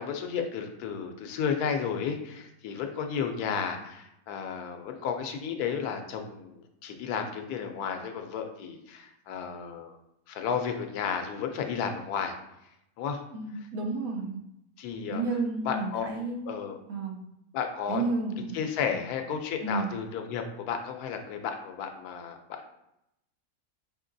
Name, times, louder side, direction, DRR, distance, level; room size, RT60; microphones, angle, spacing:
voice 1, 0.0-10.0 10.3-12.4 13.0-13.2 14.8-15.2 15.6-16.1 16.5-16.8 17.5-18.0 18.5-22.6, left 7 dB, 90° left, 5 dB, 1.1 m, -33 dB
voice 2, 13.3-14.4 15.1-16.4 16.9-17.2 17.9-18.6 19.6-19.9, right 3 dB, 70° right, 1 dB, 1.2 m, -31 dB
4.8 x 2.8 x 2.6 m, 0.83 s
omnidirectional pair, 1.6 m